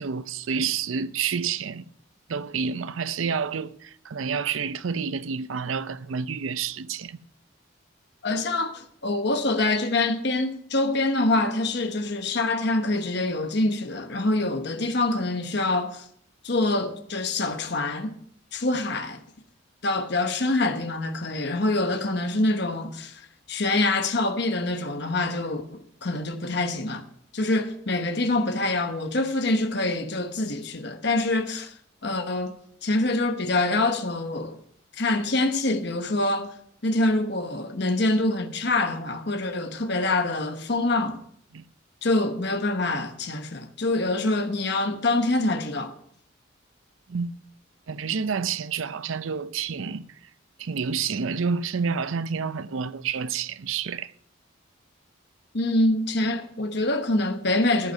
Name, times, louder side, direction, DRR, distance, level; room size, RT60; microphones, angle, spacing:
voice 1, 0.0-1.9 2.3-7.2 41.5-41.6 47.1-47.3 47.9-50.3 50.6-54.1, right 6 dB, 75° right, 0.5 m, -29 dB
voice 2, 8.2-16.1 16.4-18.2 18.5-19.2 19.8-27.0 27.3-31.7 32.0-32.5 32.8-34.6 34.9-36.5 36.8-41.2 42.0-45.9 55.5-57.9, left 2 dB, 55° left, 1.0 m, -25 dB
13.5 x 8.2 x 5.4 m
head